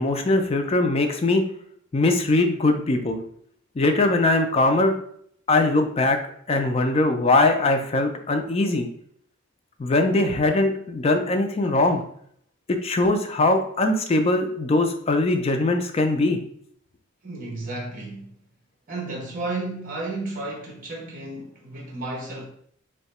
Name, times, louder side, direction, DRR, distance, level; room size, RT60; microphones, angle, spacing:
voice 1, 0.0-1.5 1.9-3.2 3.8-5.0 5.5-6.2 6.5-8.9 9.8-12.0 12.7-16.4, left 2 dB, 30° left, 0.3 m, -21 dB
voice 2, 17.2-18.3 18.9-22.5, right 2 dB, 40° right, 1.0 m, -33 dB
2.7 x 2.2 x 4.1 m
head